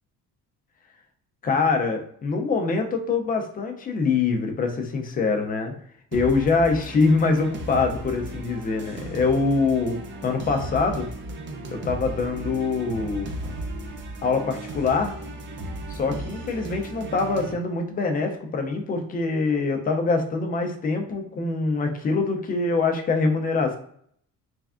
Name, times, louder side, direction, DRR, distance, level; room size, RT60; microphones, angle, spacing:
voice 1, 1.4-5.7 6.1-11.1 11.7-13.3 14.2-15.1 15.9-23.8, left 4 dB, 25° left, 4 dB, 0.4 m, -24 dB
sound 1, 6.1-17.5, right 1 dB, 35° right, 0.5 m, -35 dB
3.4 x 3.2 x 2.4 m, 0.63 s
cardioid pair, 165°, 34 cm